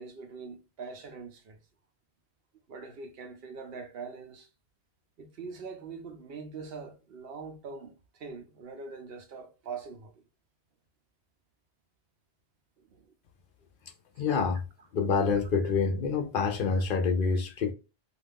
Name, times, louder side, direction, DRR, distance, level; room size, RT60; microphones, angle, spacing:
voice 1, 0.0-1.6 2.7-4.5 5.2-10.1 12.8-13.1 16.7-16.8, right 5 dB, 70° right, 0.8 m, -43 dB
voice 2, 14.2-14.6 14.9-17.7, left 5 dB, 60° left, 0.7 m, -27 dB
2.5 x 2.4 x 3.4 m
omnidirectional pair, 1.1 m